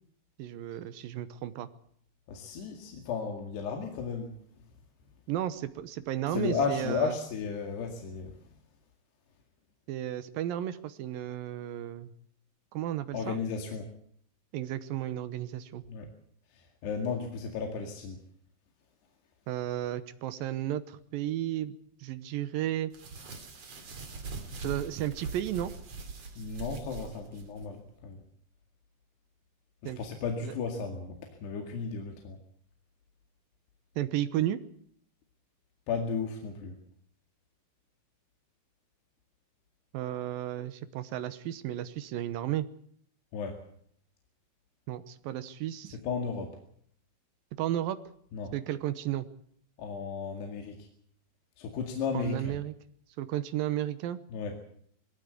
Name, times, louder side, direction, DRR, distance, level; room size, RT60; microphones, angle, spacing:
voice 1, 0.4-1.7 5.3-7.1 9.9-12.1 12.7-13.4 14.5-15.8 19.5-22.9 24.6-25.7 29.8-30.0 30.4-30.5 34.0-34.6 39.9-42.7 44.9-46.0 47.6-48.0 48.5-49.3 52.1-52.7 53.2-54.2, right 12 dB, 75° right, 13 dB, 2.1 m, -33 dB
voice 2, 2.3-4.3 6.3-8.4 13.1-13.9 15.9-16.1 16.5-18.2 26.4-28.2 29.8-32.4 35.9-36.8 43.3-43.6 45.9-46.6 48.3-48.5 49.8-50.9 51.6-52.6 54.3-54.6, left 5 dB, 65° left, 3 dB, 4.1 m, -34 dB
sound 1, 22.9-27.7, right 4 dB, 40° right, 3.4 m, -42 dB
21.5 x 16.0 x 8.3 m, 0.63 s
omnidirectional pair, 5.3 m